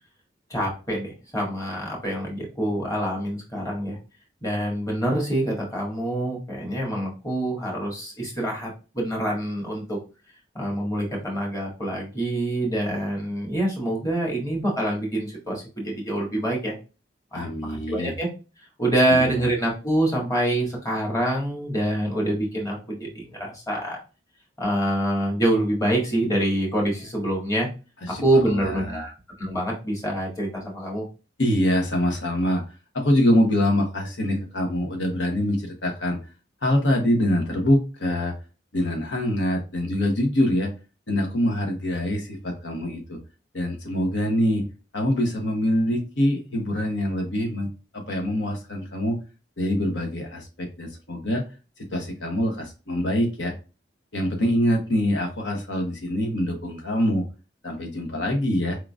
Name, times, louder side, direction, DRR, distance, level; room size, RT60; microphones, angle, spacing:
voice 1, 0.5-4.0 4.4-10.0 10.5-16.7 17.3-18.3 18.8-24.0 24.6-27.7 28.2-29.1 29.4-31.0, right 1 dB, 20° left, -2 dB, 1.7 m, -26 dB
voice 2, 17.3-18.1 19.1-19.2 28.0-29.0 31.4-32.6 32.9-36.2 36.6-38.3 38.7-40.7 41.1-43.2 43.5-44.6 44.9-47.7 47.9-49.2 49.6-51.4 51.8-53.5 54.1-57.3 57.6-58.8, left 1 dB, 75° left, 2 dB, 1.1 m, -24 dB
4.7 x 3.8 x 2.4 m, 0.32 s
head